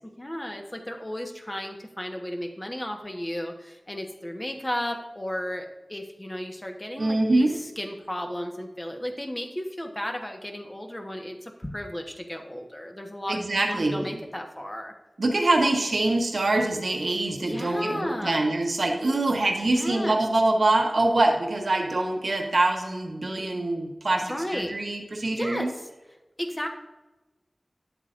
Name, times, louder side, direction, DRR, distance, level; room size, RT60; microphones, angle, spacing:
voice 1, 0.0-13.4 13.7-14.9 17.4-18.5 19.6-20.2 24.3-24.8 25.3-25.9 26.4-26.7, equal, 25° left, 3 dB, 1.2 m, -34 dB
voice 2, 7.0-7.5 13.3-14.1 15.2-25.7, right 2 dB, 80° right, 2 dB, 1.1 m, -24 dB
10.5 x 7.9 x 2.6 m, 1.1 s
wide cardioid pair, 50°, 0 cm